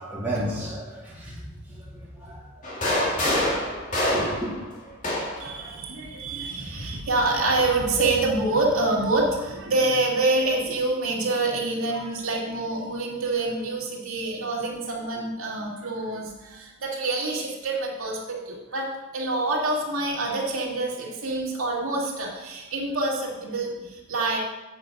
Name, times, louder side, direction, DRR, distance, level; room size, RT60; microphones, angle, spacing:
voice 1, 0.0-1.4 1.7-2.5 2.9-3.8 4.1-4.5, right 1 dB, 10° right, -7 dB, 2.6 m, -34 dB
sound 1, 2.6-5.5 6.6-7.7, left 1 dB, 35° left, 2.3 m, -27 dB
voice 2, 5.4-18.9 19.1-24.4, right 2 dB, 75° right, -3 dB, 2.2 m, -26 dB
8.1 x 7.7 x 5.3 m, 1.0 s
head